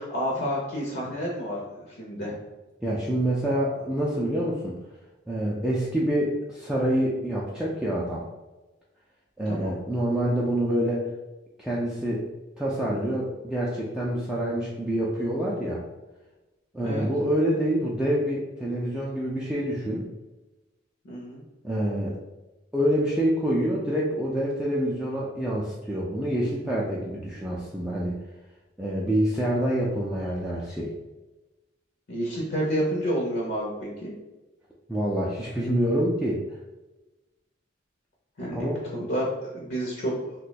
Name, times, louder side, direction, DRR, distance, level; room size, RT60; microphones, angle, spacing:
voice 1, 0.0-2.4 9.4-9.7 16.8-17.1 21.0-21.4 32.1-34.1 38.4-40.1, equal, 60° left, -3 dB, 0.6 m, -30 dB
voice 2, 2.8-4.8 5.3-8.2 9.4-11.0 11.6-12.3 12.6-15.8 16.7-20.1 21.6-22.2 22.7-28.2 28.8-30.9 34.9-36.4 38.5-38.8, right 1 dB, 5° right, -6 dB, 0.3 m, -26 dB
2.6 x 2.2 x 3.9 m, 1.1 s
head